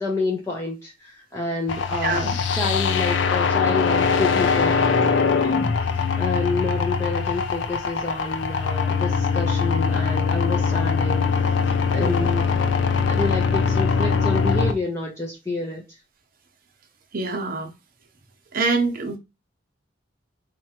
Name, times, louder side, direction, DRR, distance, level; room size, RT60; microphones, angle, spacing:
voice 1, 0.0-11.3 11.6-12.7 13.0-15.8, left 3 dB, 15° left, 0.6 m, -29 dB
sound 1, 1.7-14.7, left 5 dB, 75° left, 0.4 m, -22 dB
voice 2, 2.0-2.4 12.0-12.3 17.1-17.7 18.5-19.2, right 3 dB, 50° right, 0.7 m, -25 dB
4.3 x 2.4 x 2.9 m
head